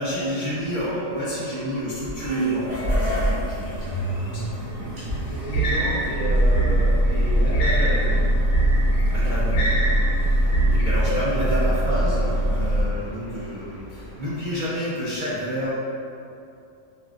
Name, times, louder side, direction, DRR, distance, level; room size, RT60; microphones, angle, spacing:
voice 1, 0.0-4.5 4.9-5.2 5.5-6.1 9.1-15.7, equal, 65° right, -10 dB, 0.4 m, -30 dB
sound 1, 0.6-14.6, left 2 dB, 25° left, 0.6 m, -38 dB
sound 2, 1.9-12.8, right 1 dB, 85° right, 1.7 m, -23 dB
voice 2, 5.3-8.2 9.0-9.5 10.4-11.3 11.6-11.7, equal, 50° left, -9 dB, 1.2 m, -32 dB
sound 3, 5.5-10.9, right 3 dB, 90° left, 1.2 m, -26 dB
4.7 x 2.4 x 2.4 m, 2.6 s
omnidirectional pair, 1.7 m